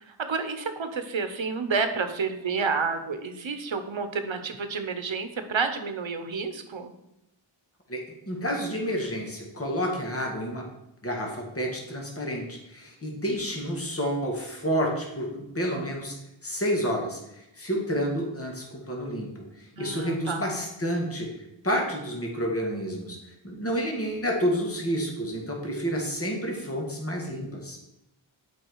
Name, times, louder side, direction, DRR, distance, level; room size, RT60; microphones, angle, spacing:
voice 1, 0.1-6.9 19.8-20.4, right 5 dB, 70° right, 8 dB, 1.0 m, -30 dB
voice 2, 8.3-10.7 11.0-16.1 16.4-21.3 21.6-23.2 23.4-27.8, equal, 30° left, 0 dB, 2.0 m, -29 dB
8.0 x 5.1 x 4.7 m, 0.87 s
wide cardioid pair, 45°, 48 cm